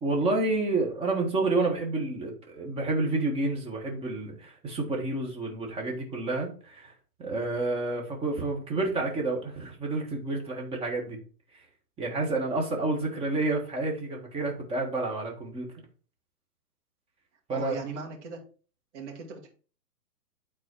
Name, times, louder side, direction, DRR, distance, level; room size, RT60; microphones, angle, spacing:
voice 1, 0.0-6.9 7.2-11.2 11.5-11.6 12.0-15.7 17.5-17.7, right 2 dB, 10° right, 0 dB, 1.5 m, -29 dB
voice 2, 17.5-18.4 18.9-19.5, right 4 dB, 45° right, 3 dB, 2.5 m, -38 dB
9.4 x 4.2 x 4.5 m, 0.39 s
hypercardioid pair, 140°, 48 cm